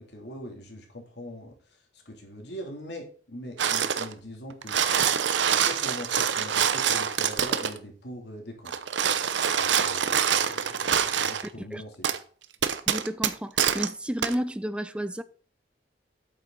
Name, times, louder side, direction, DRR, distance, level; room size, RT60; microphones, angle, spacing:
voice 1, 0.0-4.8 5.6-8.7 9.5-12.1, equal, 70° left, 3.0 m, -42 dB
sound 1, 3.6-4.1 4.5-7.8 8.7-11.5 12.0-12.2 12.6-13.9 14.2-14.4, right 8 dB, 85° right, 0.8 m, -25 dB
voice 2, 12.9-15.2, equal, 5° right, 0.4 m, -32 dB
8.7 x 7.4 x 4.0 m
head